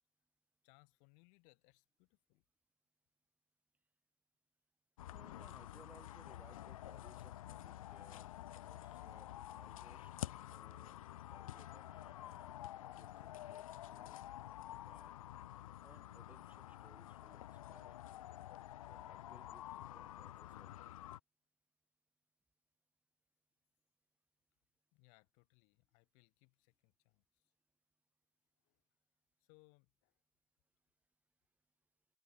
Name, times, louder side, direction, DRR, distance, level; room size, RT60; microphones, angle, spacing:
voice 1, 0.6-2.5 24.9-27.5 28.6-28.8 29.4-30.2, left 39 dB, 45° left, 5.4 m, -70 dB
sound 1, 5.0-21.2, left 13 dB, 75° left, 1.2 m, -50 dB
voice 2, 5.1-8.3 8.6-10.1 10.5-11.0 11.3-14.2 14.7-15.1 15.8-18.0 18.9-20.7, right 3 dB, 10° right, 3.1 m, -65 dB
supercardioid pair, 145°, 18 cm